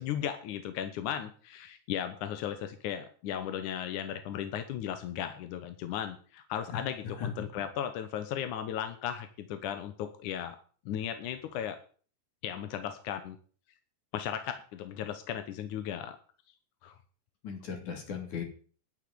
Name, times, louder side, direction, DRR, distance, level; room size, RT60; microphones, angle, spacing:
voice 1, 0.0-10.6 10.9-11.8 12.4-13.4 14.1-16.2 16.8-17.0, left 9 dB, 65° left, 9 dB, 2.0 m, -36 dB
voice 2, 6.7-7.3 17.4-18.4, left 7 dB, 50° left, 4 dB, 4.1 m, -37 dB
11.5 x 7.4 x 9.6 m, 0.42 s
omnidirectional pair, 4.7 m